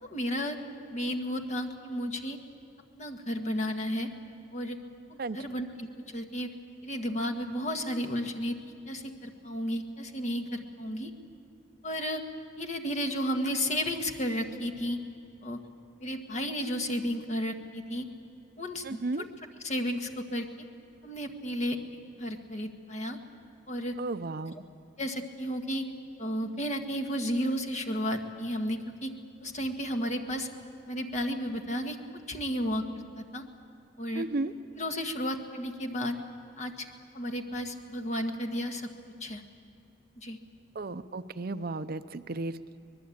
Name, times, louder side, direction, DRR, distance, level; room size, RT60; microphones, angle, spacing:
voice 1, 0.0-0.6 0.9-2.4 3.0-4.1 4.5-4.8 5.1-6.5 6.8-11.1 11.8-12.2 12.6-15.0 15.4-15.6 16.0-18.1 18.6-19.3 19.6-20.5 21.0-21.8 22.2-23.2 23.7-24.0 25.0-25.9 26.2-29.1 29.4-30.5 30.9-32.0 32.3-33.4 34.0-34.3 34.8-36.2 36.6-36.9 37.1-38.9 39.2-39.4 40.2-40.4, equal, 35° left, 4 dB, 1.6 m, -33 dB
voice 2, 18.8-19.2 24.0-24.6 34.1-34.5 40.8-42.8, right 2 dB, 50° right, 11 dB, 0.6 m, -34 dB
24.5 x 20.0 x 8.6 m, 2.4 s
head